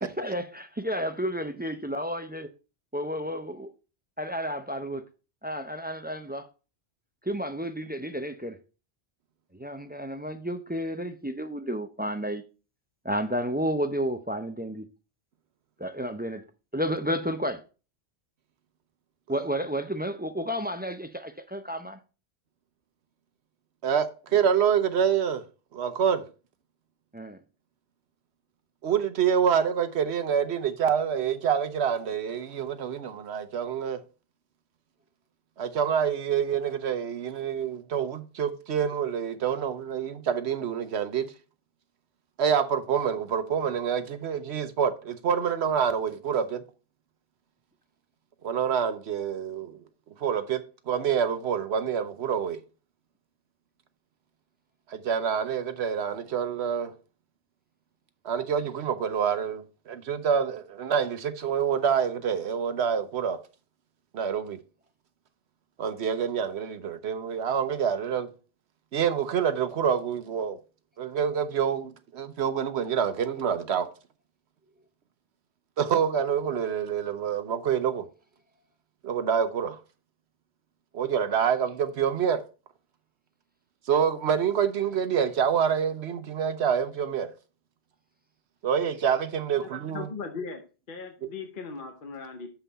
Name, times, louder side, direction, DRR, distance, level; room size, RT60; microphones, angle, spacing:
voice 1, 0.0-2.5 2.9-3.7 4.2-5.0 5.4-6.5 7.2-8.6 9.5-12.4 13.0-14.9 15.8-16.4 16.7-17.6 19.3-22.0 27.1-27.4, equal, 15° right, 0.3 m, -31 dB
voice 2, 23.8-25.4 25.7-26.2 28.8-34.0 35.6-41.3 42.4-46.6 48.4-49.8 50.2-52.6 54.9-56.9 58.2-63.4 64.1-64.6 65.8-68.3 68.9-70.6 71.0-73.9 75.8-78.1 79.0-79.8 80.9-82.4 83.9-87.3 88.6-90.1, right 7 dB, 80° right, 1.1 m, -27 dB
voice 3, 89.5-90.6 90.9-92.5, left 5 dB, 50° left, 1.1 m, -38 dB
7.0 x 5.7 x 4.0 m
omnidirectional pair, 1.1 m